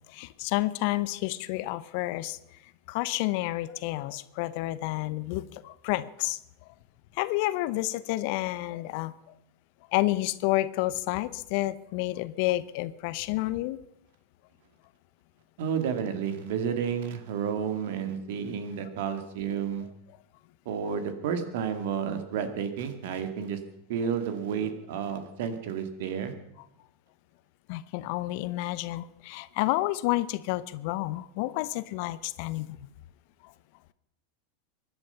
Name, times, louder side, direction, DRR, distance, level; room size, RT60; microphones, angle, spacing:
voice 1, 0.1-2.4 2.9-6.4 7.2-9.1 9.9-13.8 27.7-32.8, left 18 dB, 55° left, 16 dB, 0.9 m, -30 dB
voice 2, 15.6-19.9 20.7-23.6 23.9-26.3, right 7 dB, 65° right, 9 dB, 2.2 m, -31 dB
23.5 x 10.5 x 5.7 m, 0.82 s
hypercardioid pair, 90°, 0 cm